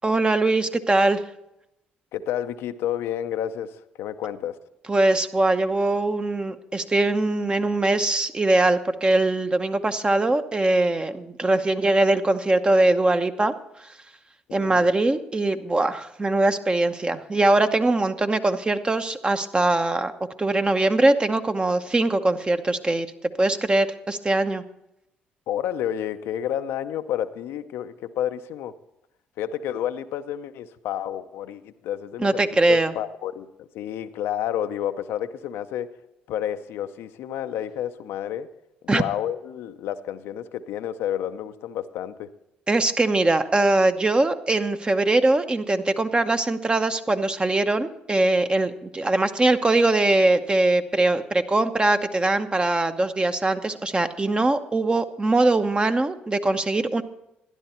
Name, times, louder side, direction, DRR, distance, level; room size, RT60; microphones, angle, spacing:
voice 1, 0.0-1.2 4.9-13.5 14.5-20.1 20.4-23.1 23.4-24.6 32.2-32.9 38.9-39.0 42.7-57.0, right 2 dB, 25° right, 8 dB, 0.9 m, -21 dB
voice 2, 2.1-4.6 14.5-14.9 25.5-28.7 29.4-33.5 33.7-35.9 36.3-38.5 38.8-42.3, left 10 dB, 75° left, 9 dB, 0.6 m, -30 dB
12.5 x 10.5 x 4.3 m, 0.85 s
supercardioid pair, 60°, 4 cm